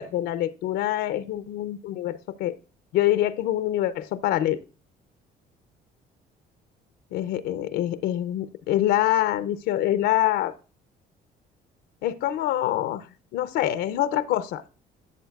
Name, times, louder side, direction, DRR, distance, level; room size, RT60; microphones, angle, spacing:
voice 1, 0.0-2.6 2.9-4.6 7.1-10.5 12.0-13.1 13.3-14.6, left 13 dB, 85° left, 13 dB, 0.5 m, -25 dB
12.5 x 7.1 x 2.3 m, 0.35 s
cardioid pair, 110°, 17 cm